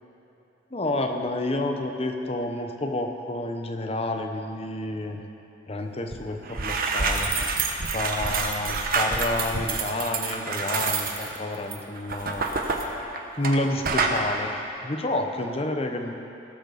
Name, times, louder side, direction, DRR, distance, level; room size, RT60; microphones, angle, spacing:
voice 1, 0.7-5.2 5.7-7.3 7.9-12.4 13.4-16.1, left 1 dB, 30° left, 4 dB, 0.9 m, -29 dB
sound 1, 6.1-6.2 6.5-13.6 13.8-14.2, right 4 dB, 50° right, 1.0 m, -27 dB
17.0 x 6.5 x 6.9 m, 3.0 s
head